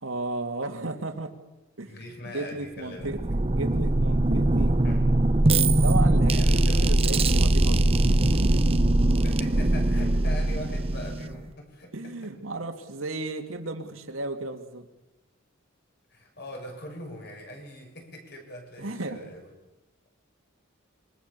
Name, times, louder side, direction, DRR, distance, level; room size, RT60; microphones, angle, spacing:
voice 1, 0.0-1.4 1.8-1.9 2.2-4.8 5.8-9.0 11.9-14.9 18.8-19.2, right 2 dB, 80° right, 5 dB, 2.7 m, -34 dB
voice 2, 1.9-3.1 4.8-5.0 6.3-6.9 9.2-12.3 16.1-19.6, left 1 dB, 55° left, 2 dB, 7.0 m, -42 dB
sound 1, 3.0-11.5, right 1 dB, 30° right, 0.8 m, -22 dB
26.5 x 24.0 x 7.0 m, 0.99 s
head